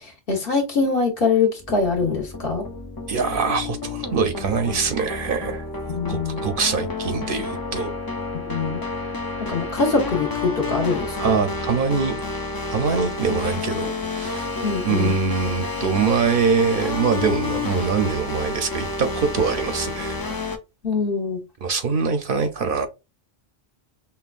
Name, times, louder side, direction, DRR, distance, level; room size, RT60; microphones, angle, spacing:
voice 1, 0.0-2.6 5.9-6.4 8.5-8.8 9.4-11.3 13.3-13.4 14.6-15.1 20.8-21.4, left 4 dB, 60° left, 1.3 m, -23 dB
sound 1, 1.6-20.6, left 3 dB, 35° left, 0.4 m, -30 dB
voice 2, 3.1-5.6 6.1-7.9 11.2-12.2 12.7-14.4 14.8-20.2 21.6-22.9, right 5 dB, 60° right, 0.8 m, -23 dB
5.5 x 2.3 x 2.4 m
omnidirectional pair, 1.1 m